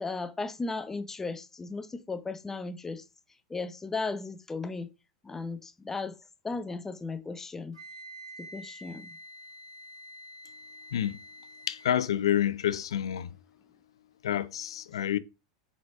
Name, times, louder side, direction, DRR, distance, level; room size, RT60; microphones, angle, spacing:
voice 1, 0.0-3.0 3.5-4.9 5.2-6.1 6.4-7.8 8.4-9.2, left 3 dB, 15° left, 0.5 m, -36 dB
Wind instrument woodwind instrument, 7.7-11.9, equal, 85° right, 1.3 m, -47 dB
voice 2, 11.7-13.3 14.2-15.2, left 10 dB, 75° left, 0.3 m, -28 dB
4.6 x 3.9 x 2.5 m
hypercardioid pair, 90°, 3 cm